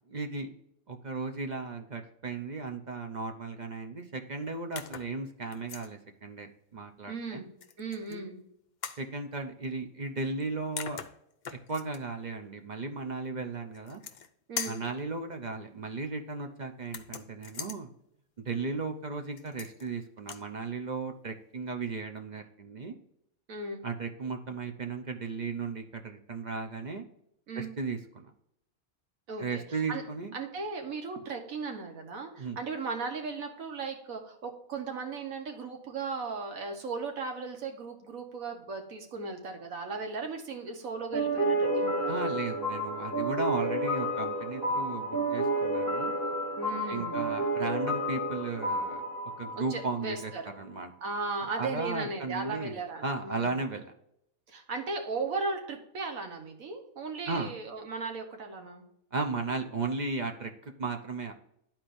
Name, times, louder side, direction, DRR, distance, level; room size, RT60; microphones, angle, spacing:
voice 1, 0.1-0.5 0.9-7.4 8.1-8.2 9.0-11.0 11.7-14.0 14.6-17.9 18.4-22.9 23.8-27.0 27.5-28.3 29.4-30.3 32.4-32.6 42.1-46.2 46.9-49.0 49.4-50.9 51.5-53.8 57.3-57.5 59.1-61.3, right 3 dB, 40° right, 5 dB, 0.7 m, -35 dB
sound 1, 4.8-5.1 5.5-5.9 7.6-8.2 8.8-9.1 10.4-10.5 10.8-12.0 13.7-14.3 14.6-14.9 16.9-17.8 19.4-19.9 20.2-20.5, left 7 dB, 60° left, 0.5 m, -40 dB
voice 2, 7.1-7.5 7.8-8.4 14.5-14.8 23.5-23.8 27.5-27.7 29.3-30.0 30.3-42.2 46.6-47.3 49.6-50.4 51.0-53.6 54.5-58.8, right 4 dB, 75° right, 4 dB, 1.6 m, -37 dB
sound 2, 41.1-50.4, right 1 dB, 15° left, 0.7 m, -31 dB
11.5 x 4.4 x 2.6 m, 0.77 s
omnidirectional pair, 1.4 m